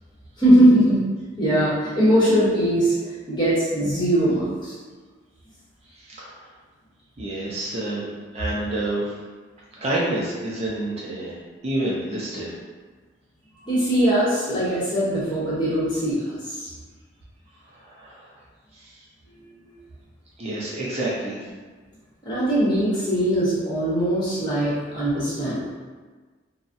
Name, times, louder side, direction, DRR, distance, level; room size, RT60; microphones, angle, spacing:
voice 1, 0.4-1.0 1.4-3.0 3.3-4.8 13.6-16.7 22.2-25.7, right 1 dB, 25° left, -9 dB, 0.9 m, -20 dB
voice 2, 5.9-6.5 7.2-9.1 9.7-12.5 17.7-18.3 18.7-19.0 20.4-21.5, right 1 dB, 35° right, -6 dB, 0.5 m, -29 dB
3.9 x 2.0 x 2.5 m, 1.4 s
head